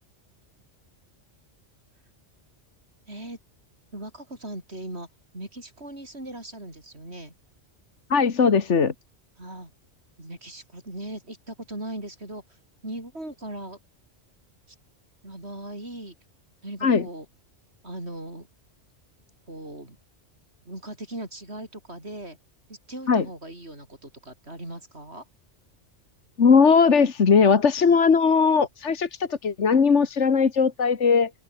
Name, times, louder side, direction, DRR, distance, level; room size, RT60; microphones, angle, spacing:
voice 1, 3.1-3.4 3.9-5.1 5.3-7.3 9.4-9.7 10.2-13.8 14.7-14.8 15.2-16.1 16.6-17.3 17.8-18.5 19.5-20.0 20.7-22.4 22.7-25.3, right 1 dB, 60° right, 7.7 m, -39 dB
voice 2, 8.1-8.9 16.8-17.1 23.1-23.3 26.4-31.3, left 5 dB, 75° left, 1.9 m, -19 dB
omnidirectional pair, 1.2 m